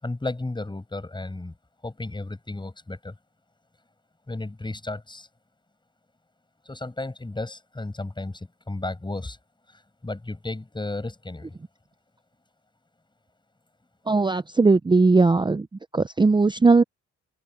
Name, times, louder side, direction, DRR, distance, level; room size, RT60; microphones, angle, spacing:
voice 1, 0.0-1.5 1.8-3.2 4.3-5.3 6.6-9.4 9.7-11.5, left 2 dB, 15° left, 7.3 m, -33 dB
voice 2, 14.1-15.7 15.9-16.8, right 3 dB, 15° right, 0.6 m, -18 dB
open air
cardioid pair, 90°, 30 cm